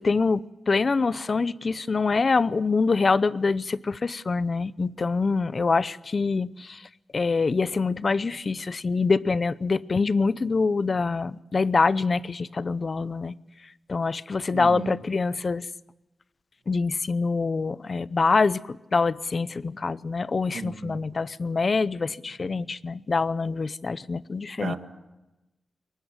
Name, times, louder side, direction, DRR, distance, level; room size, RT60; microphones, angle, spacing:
voice 1, 0.0-6.8 7.1-13.3 13.9-15.7 16.7-24.8, left 4 dB, 40° left, 18 dB, 0.7 m, -25 dB
voice 2, 14.5-15.0 20.5-21.0 24.6-24.8, right 6 dB, 85° right, 7 dB, 2.1 m, -34 dB
23.0 x 19.5 x 7.5 m, 1.0 s
wide cardioid pair, 115°, 0 cm